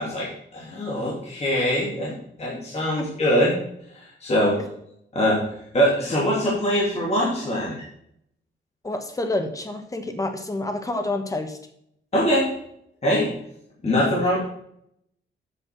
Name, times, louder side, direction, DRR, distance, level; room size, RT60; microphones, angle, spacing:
voice 1, 0.0-3.6 3.9-4.6 5.1-5.4 5.7-7.8 12.1-12.5 13.0-13.3 13.8-14.4, equal, 30° left, -5 dB, 2.7 m, -23 dB
voice 2, 8.8-11.6, left 2 dB, 15° left, 6 dB, 1.3 m, -28 dB
8.3 x 5.8 x 5.9 m, 0.73 s
cardioid pair, 130°, 20 cm